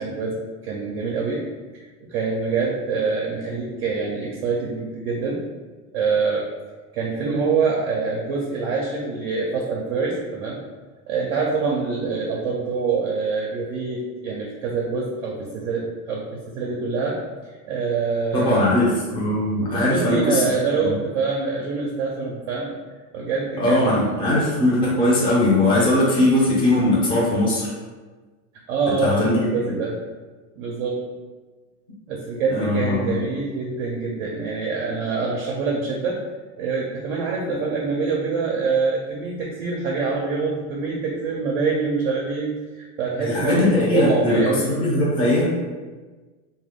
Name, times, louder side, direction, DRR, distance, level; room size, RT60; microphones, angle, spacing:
voice 1, 0.0-1.5 2.0-5.4 5.9-6.5 6.9-10.6 11.1-17.2 17.7-18.7 19.7-22.7 23.1-24.3 28.7-30.0 30.6-31.1 32.1-36.2 36.6-44.7, right 4 dB, 45° right, -2 dB, 0.5 m, -25 dB
voice 2, 18.3-20.4 20.8-21.0 23.6-27.7 29.0-29.5 32.5-33.1 43.2-45.5, left 1 dB, 10° left, -5 dB, 0.5 m, -20 dB
2.9 x 2.2 x 3.4 m, 1.3 s
supercardioid pair, 140°, 44 cm